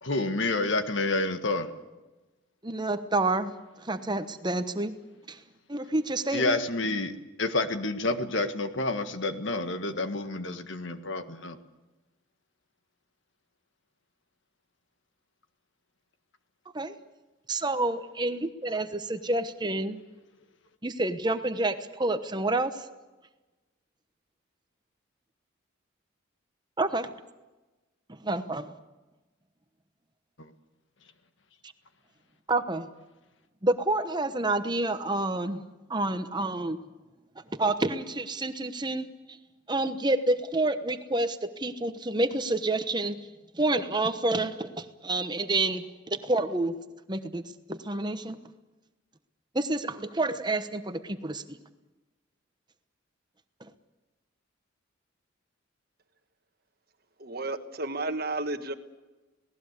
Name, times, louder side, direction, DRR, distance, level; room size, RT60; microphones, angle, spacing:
voice 1, 0.0-1.7 6.3-11.6 30.4-30.5, left 2 dB, 65° left, 8 dB, 1.7 m, -29 dB
voice 2, 2.6-3.5 3.8-4.9 5.3-5.4 5.7-6.6 16.7-16.9 17.5-20.0 20.8-22.9 26.8-27.1 28.1-28.7 32.5-32.9 33.6-35.6 35.9-36.8 37.5-39.1 39.7-43.2 43.5-46.7 47.1-47.4 47.7-48.4 49.5-51.6 53.6-53.7, right 2 dB, 20° right, 9 dB, 1.0 m, -28 dB
voice 3, 57.2-58.7, right 2 dB, 50° right, 8 dB, 1.5 m, -32 dB
28.0 x 18.5 x 8.2 m, 1.1 s
head